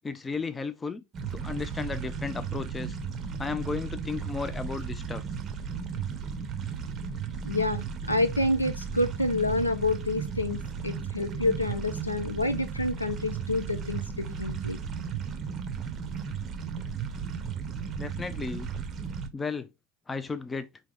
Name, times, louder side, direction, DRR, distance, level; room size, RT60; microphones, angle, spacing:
voice 1, 0.0-1.0 1.3-3.0 3.4-5.2 18.0-18.7 19.3-19.7 20.1-20.7, left 4 dB, 15° left, 0.4 m, -34 dB
sound 1, 1.1-19.3, right 6 dB, 30° right, 0.6 m, -35 dB
voice 2, 7.4-14.8, left 2 dB, 85° left, 0.5 m, -28 dB
4.7 x 2.8 x 3.5 m
figure-of-eight pair, 80°, 0 cm